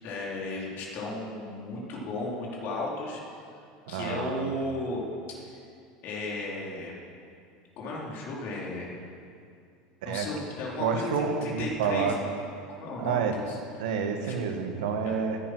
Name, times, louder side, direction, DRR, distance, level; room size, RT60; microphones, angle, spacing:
voice 1, 0.0-3.4 3.9-5.0 5.3-5.6 6.0-6.9 7.8-9.0 10.0-12.3 12.8-13.6 14.2-14.3 15.0-15.1, left 2 dB, 55° left, -3 dB, 4.2 m, -35 dB
voice 2, 3.9-4.5 10.0-10.3 10.8-12.2 13.0-13.3 13.8-15.4, right 6 dB, 80° right, 5 dB, 1.6 m, -29 dB
15.5 x 10.5 x 6.3 m, 2.4 s
supercardioid pair, 105°, 4 cm